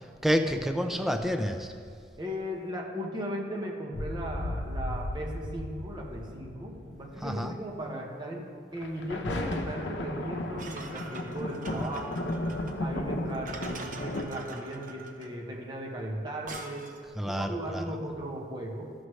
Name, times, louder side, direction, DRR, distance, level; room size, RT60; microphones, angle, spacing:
voice 1, 0.2-1.7 7.2-7.6 17.2-18.0, equal, ahead, 5 dB, 0.5 m, -29 dB
voice 2, 2.2-8.5 8.7-12.3 12.8-16.9 17.3-18.9, equal, 25° right, -1 dB, 1.2 m, -37 dB
sound 1, 3.9-7.5 8.8-14.2, left 1 dB, 75° left, 0.8 m, -35 dB
sound 2, 10.6-17.1, right 3 dB, 50° right, 0.7 m, -44 dB
12.5 x 6.2 x 3.2 m, 2.2 s
head